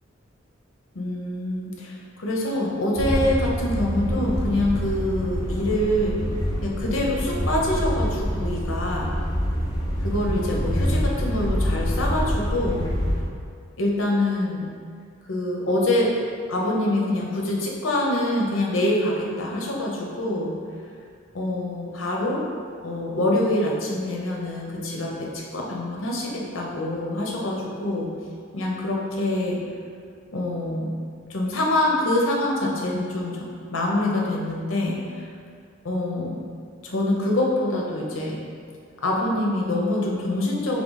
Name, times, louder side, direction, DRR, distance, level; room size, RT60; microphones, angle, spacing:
voice 1, 0.9-6.2 6.6-9.1 10.0-12.8 13.8-14.7 15.3-16.2 16.5-20.5 21.3-22.5 22.8-28.1 28.5-29.6 30.3-31.0 31.3-35.0 35.8-36.4 36.8-38.4 39.0-40.8, left 1 dB, 80° left, -2 dB, 0.8 m, -25 dB
sound 1, 3.0-13.2, equal, 20° left, 0.8 m, -26 dB
3.7 x 3.2 x 3.9 m, 2.2 s
head